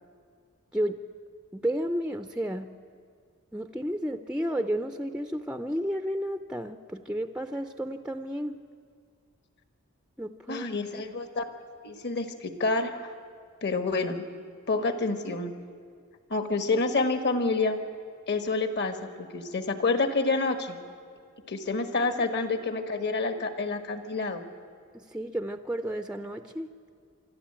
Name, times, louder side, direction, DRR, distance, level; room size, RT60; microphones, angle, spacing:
voice 1, 1.5-2.7 3.5-8.6 10.2-10.7 10.9-11.0 24.9-26.7, equal, 5° right, 8 dB, 0.5 m, -32 dB
voice 2, 10.5-11.4 11.8-12.9 13.6-14.2 14.7-15.5 16.3-17.8 18.3-20.8 21.5-24.4, left 3 dB, 50° left, 8 dB, 1.5 m, -28 dB
25.5 x 12.5 x 8.8 m, 2.1 s
head